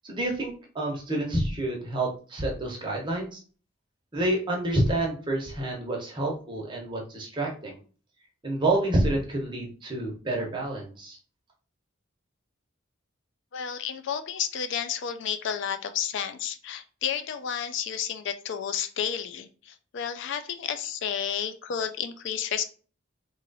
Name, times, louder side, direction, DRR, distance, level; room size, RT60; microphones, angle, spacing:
voice 1, 0.0-3.4 4.1-7.8 8.4-11.2, right 1 dB, 25° right, -1 dB, 1.0 m, -28 dB
voice 2, 13.5-22.6, left 8 dB, 65° left, 10 dB, 0.4 m, -31 dB
3.0 x 2.5 x 3.9 m, 0.39 s
head